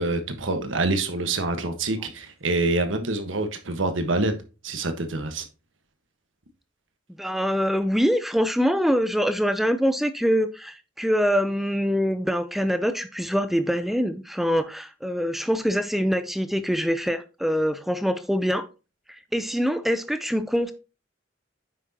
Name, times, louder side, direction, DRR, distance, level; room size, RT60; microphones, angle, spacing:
voice 1, 0.0-4.4 4.6-5.5, right 2 dB, 80° right, 1.3 m, -26 dB
voice 2, 7.2-18.7 19.1-20.7, equal, ahead, 0.5 m, -24 dB
9.2 x 6.0 x 2.9 m
head